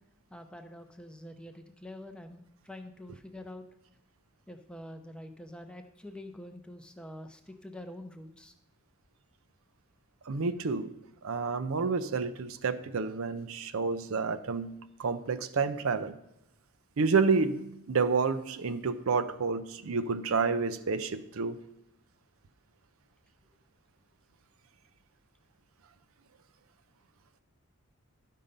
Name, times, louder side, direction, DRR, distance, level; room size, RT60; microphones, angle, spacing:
voice 1, 0.3-3.6 4.5-8.5, left 1 dB, 5° left, 0.6 m, -46 dB
voice 2, 10.3-10.9 11.2-16.2 17.0-21.6, right 4 dB, 65° right, 0.5 m, -29 dB
12.0 x 5.6 x 5.2 m
head